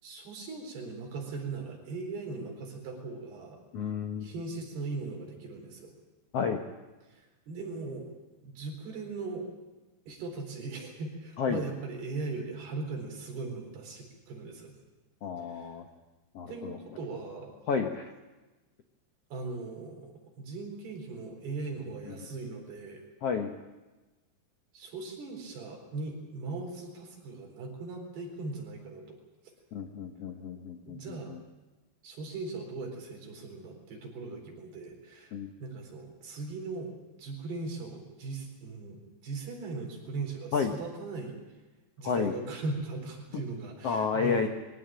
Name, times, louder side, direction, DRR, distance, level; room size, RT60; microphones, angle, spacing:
voice 1, 0.0-3.6 4.2-5.9 7.1-8.1 8.4-9.5 10.1-14.7 15.4-15.7 16.5-17.5 19.3-23.0 24.7-29.2 30.9-31.3 32.0-35.3 35.6-36.9 37.2-41.3 42.0-44.5, right 3 dB, 75° right, 1 dB, 6.1 m, -39 dB
voice 2, 3.7-4.3 6.3-6.6 11.4-11.6 15.2-15.8 16.3-16.8 17.7-18.1 23.2-23.5 29.7-31.4 35.3-35.5 40.5-40.7 42.0-42.3 43.8-44.5, left 6 dB, 85° left, 4 dB, 1.3 m, -31 dB
23.5 x 16.0 x 8.9 m, 1.2 s
omnidirectional pair, 4.7 m